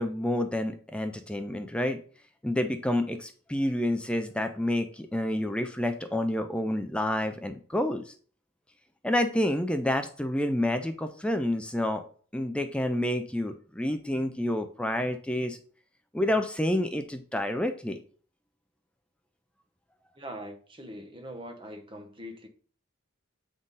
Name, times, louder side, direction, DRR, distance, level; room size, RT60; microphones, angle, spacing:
voice 1, 0.0-2.0 2.4-8.1 9.0-12.0 12.3-15.6 16.1-18.0, left 1 dB, 5° left, 0.4 m, -29 dB
voice 2, 20.2-22.5, equal, 25° right, 0.8 m, -42 dB
7.6 x 3.7 x 4.0 m
head